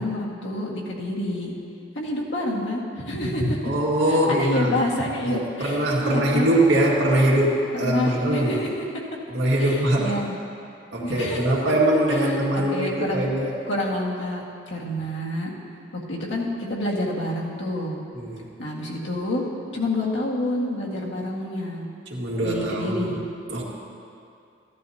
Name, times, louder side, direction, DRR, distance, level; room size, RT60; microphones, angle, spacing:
voice 1, 0.0-1.5 2.0-3.7 4.1-6.5 7.8-8.7 9.5-10.4 11.0-11.5 12.2-13.3 13.7-15.5 16.1-18.0 18.6-19.4 19.7-21.9 22.4-23.2, left 1 dB, 85° left, -4 dB, 1.8 m, -28 dB
voice 2, 3.6-4.8 5.3-8.6 9.3-10.1 10.9-13.5 18.1-18.4 22.1-23.2 23.5-23.6, right 1 dB, 75° right, -4 dB, 2.0 m, -22 dB
15.0 x 11.5 x 2.8 m, 2.5 s
head